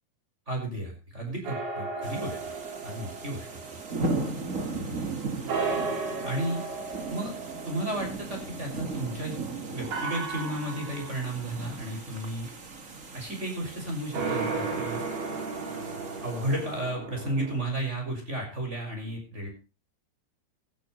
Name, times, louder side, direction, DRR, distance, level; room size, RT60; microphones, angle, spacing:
voice 1, 0.5-2.4 2.8-3.8 4.7-5.1 6.2-6.6 7.1-7.3 7.6-9.3 9.7-12.5 13.1-15.0 16.2-19.5, right 1 dB, 15° right, 2 dB, 6.3 m, -33 dB
sound 1, 1.5-5.1 5.5-9.3 9.9-11.7 14.1-17.6, right 4 dB, 60° right, 5.7 m, -35 dB
sound 2, 2.0-16.8, right 3 dB, 80° right, 0.7 m, -37 dB
18.0 x 14.5 x 3.2 m, 0.30 s
omnidirectional pair, 5.1 m